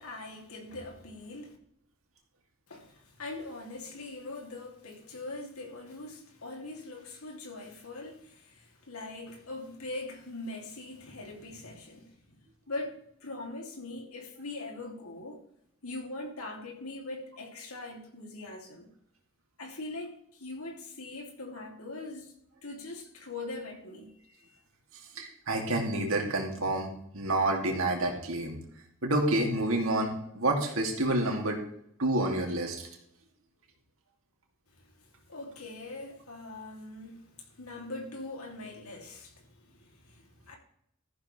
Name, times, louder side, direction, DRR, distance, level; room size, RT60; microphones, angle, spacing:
voice 1, 0.0-1.6 2.7-12.4 12.7-15.4 15.8-18.9 19.6-22.4 22.6-24.1 34.7-40.5, left 2 dB, 90° left, 3.0 m, -42 dB
voice 2, 25.1-28.6 29.0-31.6 32.0-32.9, right 1 dB, 75° right, 2.8 m, -28 dB
14.0 x 11.5 x 3.4 m
head